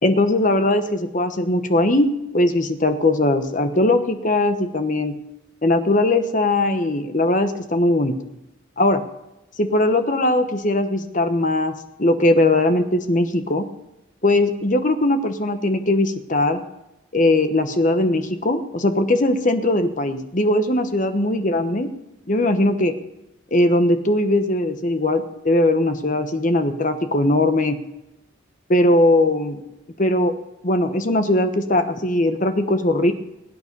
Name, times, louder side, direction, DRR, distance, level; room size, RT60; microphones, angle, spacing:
voice 1, 0.0-2.1 2.3-5.1 5.6-8.1 8.8-9.0 9.6-13.6 14.2-16.6 17.1-21.9 22.3-23.0 23.5-27.8 28.7-29.6 30.0-30.3 30.6-33.1, left 1 dB, 40° left, 8 dB, 1.1 m, -19 dB
21.5 x 9.2 x 5.4 m, 0.91 s
head